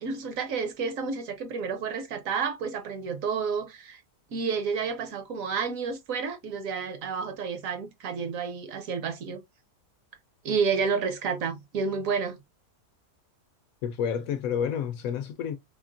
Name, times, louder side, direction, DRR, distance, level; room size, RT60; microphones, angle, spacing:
voice 1, 0.0-4.0 4.3-9.4 10.4-12.4, right 5 dB, 65° right, 1.0 m, -30 dB
voice 2, 13.8-15.6, left 8 dB, 70° left, 0.9 m, -29 dB
3.6 x 3.4 x 2.5 m
omnidirectional pair, 1.7 m